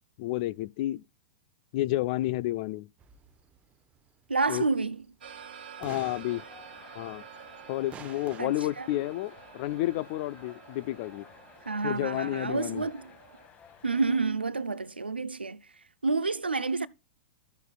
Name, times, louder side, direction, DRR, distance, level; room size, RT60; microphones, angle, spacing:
voice 1, 0.2-1.0 1.7-2.9 4.5-4.7 5.8-6.4 6.9-7.2 7.7-11.3 11.8-12.8, left 16 dB, 45° left, 0.4 m, -31 dB
sound 1, 3.0-4.7 5.1-5.2 5.8-7.7 7.9-8.4, right 8 dB, 25° right, 0.7 m, -48 dB
voice 2, 4.3-5.0 8.4-8.9 11.7-13.1 13.8-15.6 16.0-16.9, right 3 dB, 85° right, 0.4 m, -29 dB
sound 2, 5.2-13.5, right 8 dB, 70° right, 1.2 m, -49 dB
sound 3, 6.3-14.2, left 7 dB, 25° left, 1.5 m, -54 dB
14.0 x 6.6 x 2.4 m
figure-of-eight pair, 100°, 5 cm